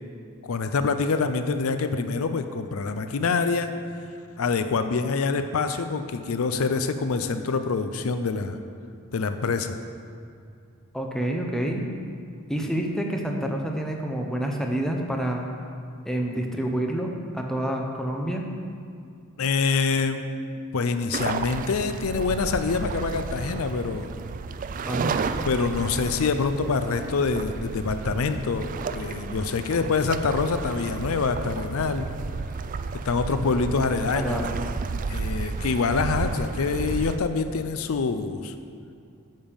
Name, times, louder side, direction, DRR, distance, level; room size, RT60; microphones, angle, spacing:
voice 1, 0.4-3.7 4.4-8.6 9.1-9.8 19.4-20.3 20.7-24.1 25.4-32.1 33.0-34.4 35.1-38.5, left 4 dB, 70° left, 9 dB, 0.5 m, -26 dB
voice 2, 10.9-11.8 12.5-15.5 16.0-18.5 24.9-25.1 34.1-34.5, right 1 dB, ahead, 1 dB, 0.7 m, -28 dB
sound 1, 21.1-37.2, right 4 dB, 40° right, 0.3 m, -32 dB
8.9 x 5.4 x 7.1 m, 2.4 s
head